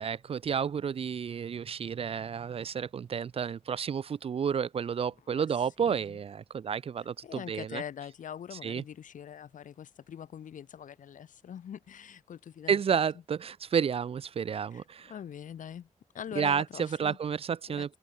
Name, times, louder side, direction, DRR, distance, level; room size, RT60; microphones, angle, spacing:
voice 1, 0.0-7.8 8.6-8.8 12.7-15.1 16.4-17.9, right 7 dB, 50° right, 0.4 m, -31 dB
voice 2, 5.3-6.2 7.2-13.0 14.7-15.9 16.1-17.2 17.7-18.0, left 9 dB, 90° left, 5.6 m, -43 dB
cardioid pair, 70°, 13 cm